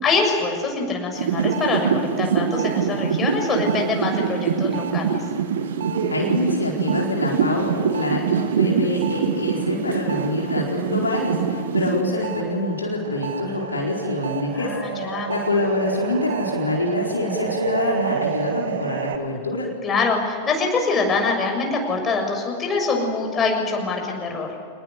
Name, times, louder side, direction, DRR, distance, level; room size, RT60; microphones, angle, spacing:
voice 1, 0.0-5.2 14.5-15.3 19.8-24.5, left 4 dB, 20° left, 2 dB, 7.0 m, -24 dB
sound 1, 1.1-12.4 12.8-19.2, right 6 dB, 60° right, 2.3 m, -25 dB
voice 2, 6.1-19.7, left 2 dB, 75° left, -1 dB, 4.4 m, -25 dB
27.0 x 20.5 x 9.7 m, 2.2 s
figure-of-eight pair, 90°, 0 cm